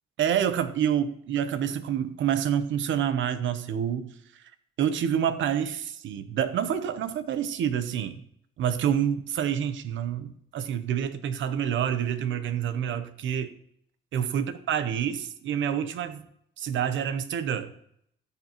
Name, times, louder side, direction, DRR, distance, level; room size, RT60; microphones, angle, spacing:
voice 1, 0.2-4.4 4.8-8.2 8.6-13.6 14.1-16.3 16.6-17.7, right 9 dB, 75° right, 12 dB, 0.9 m, -28 dB
13.5 x 6.7 x 2.9 m, 0.69 s
cardioid pair, 90°, 20 cm